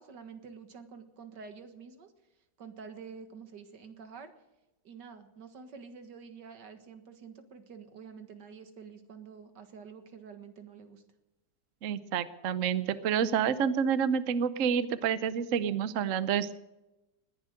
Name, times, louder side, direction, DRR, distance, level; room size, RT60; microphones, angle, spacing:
voice 1, 0.0-2.1 2.6-4.3 4.8-11.0, right 6 dB, 80° right, 8 dB, 2.2 m, -48 dB
voice 2, 11.8-16.5, right 7 dB, 55° right, 13 dB, 1.0 m, -28 dB
19.5 x 11.0 x 6.5 m, 0.98 s
omnidirectional pair, 1.9 m